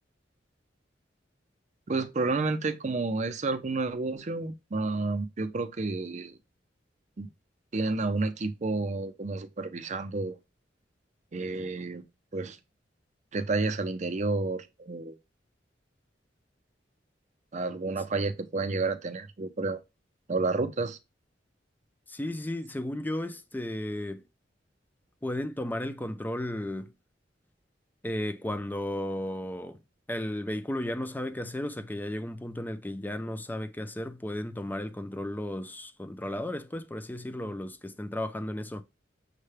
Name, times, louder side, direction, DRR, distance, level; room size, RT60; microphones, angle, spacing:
voice 1, 1.9-6.4 7.2-7.3 7.7-10.4 11.3-12.0 12.3-12.6 13.3-15.2 17.5-19.8 20.3-21.0, right 3 dB, 40° right, 0.5 m, -30 dB
voice 2, 22.1-24.2 25.2-26.9 28.0-29.8 30.1-38.8, left 1 dB, 10° left, 0.4 m, -34 dB
6.5 x 2.2 x 3.3 m
head